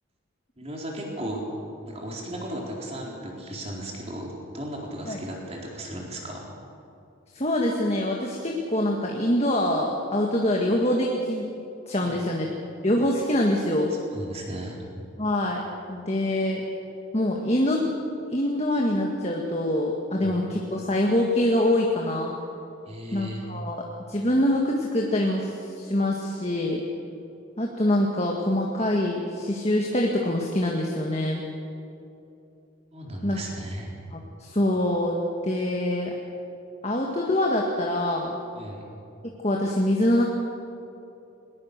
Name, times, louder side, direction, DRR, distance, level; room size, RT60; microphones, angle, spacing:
voice 1, 0.6-1.4 1.9-6.5 12.0-12.2 13.9-14.8 20.2-20.4 22.9-23.5 32.9-33.9 38.5-38.9, right 1 dB, 30° right, -2 dB, 4.0 m, -36 dB
voice 2, 7.3-11.5 11.9-12.5 12.8-14.0 15.2-15.6 15.9-16.6 17.1-17.9 18.3-22.3 23.1-26.8 27.6-31.4 33.2-33.4 34.1-36.1 36.8-38.4 39.4-40.2, left 1 dB, 30° left, 0 dB, 1.7 m, -25 dB
20.5 x 20.5 x 6.7 m, 2.8 s
head